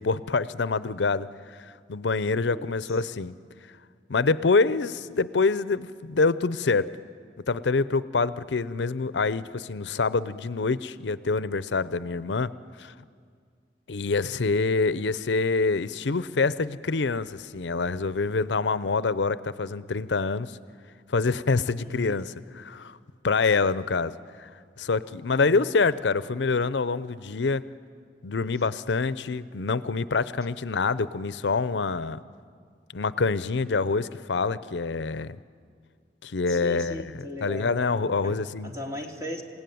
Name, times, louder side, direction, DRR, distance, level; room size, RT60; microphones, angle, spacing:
voice 1, 0.0-1.6 1.9-3.3 4.1-6.9 7.5-12.5 12.8-12.9 13.9-20.6 21.1-23.0 23.2-24.5 24.8-27.6 28.2-32.2 32.9-35.4 36.2-37.0 37.4-38.7, left 4 dB, 85° left, 16 dB, 0.6 m, -26 dB
voice 2, 2.5-3.0 21.8-22.2 25.3-25.6 36.5-37.7 38.2-38.4 38.6-39.4, left 1 dB, 20° right, 1 dB, 2.6 m, -38 dB
28.0 x 17.5 x 9.3 m, 2.1 s
head